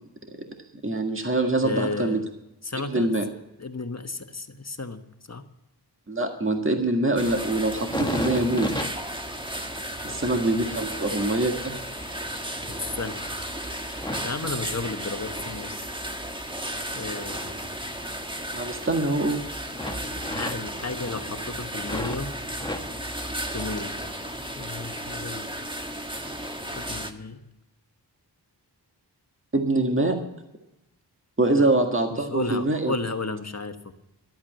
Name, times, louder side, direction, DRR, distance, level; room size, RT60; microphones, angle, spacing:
voice 1, 0.8-2.2 2.9-3.2 6.1-8.7 10.0-11.8 18.5-19.4 29.5-30.2 31.4-33.0, right 2 dB, 30° right, 4 dB, 1.8 m, -24 dB
voice 2, 1.6-2.3 2.6-3.1 3.6-5.0 5.3-5.4 10.0-10.4 12.7-13.3 13.9-15.8 16.9-17.8 20.3-22.3 23.5-23.9 24.6-25.5 26.7-27.4 31.5-31.7 32.1-33.9, left 3 dB, 40° left, 7 dB, 1.3 m, -33 dB
sound 1, 7.2-27.1, right 1 dB, 10° right, 1.4 m, -34 dB
sound 2, 7.7-15.4 15.8-18.4 18.7-19.4 19.7-22.2 22.5-24.1 24.4-25.1 25.7-25.9, left 1 dB, 10° left, 1.4 m, -37 dB
13.0 x 8.6 x 7.5 m, 0.92 s
wide cardioid pair, 55°, 41 cm